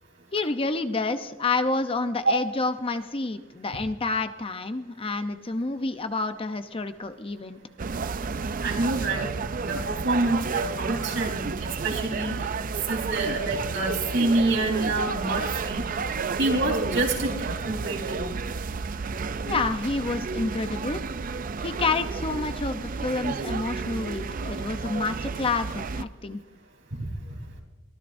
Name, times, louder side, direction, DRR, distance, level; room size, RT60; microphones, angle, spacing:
voice 1, 0.3-7.6 19.5-21.0 21.6-26.4, left 3 dB, 25° left, 9 dB, 0.7 m, -29 dB
sound 1, 7.8-26.0, right 5 dB, 45° right, 0.5 m, -31 dB
voice 2, 8.6-9.3 9.6-12.3 12.9-15.8 16.4-18.3 27.0-27.1, right 2 dB, 70° right, 0 dB, 3.9 m, -27 dB
23.5 x 14.5 x 2.6 m, 1.2 s
head